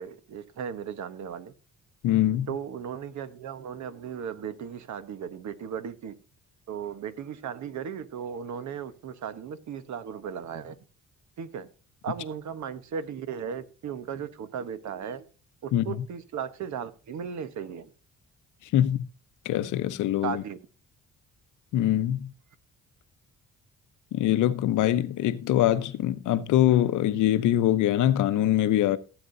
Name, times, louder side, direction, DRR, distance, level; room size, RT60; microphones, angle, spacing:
voice 1, 0.0-1.5 2.5-6.2 6.7-10.8 11.4-11.7 12.0-15.3 15.6-17.9 20.2-20.6, right 7 dB, 70° right, 1.2 m, -36 dB
voice 2, 2.0-2.5 15.7-15.9 18.7-19.1 19.4-20.4 21.7-22.3 24.1-29.0, left 12 dB, 80° left, 0.9 m, -23 dB
16.0 x 8.2 x 2.7 m
cardioid pair, 90°, 30 cm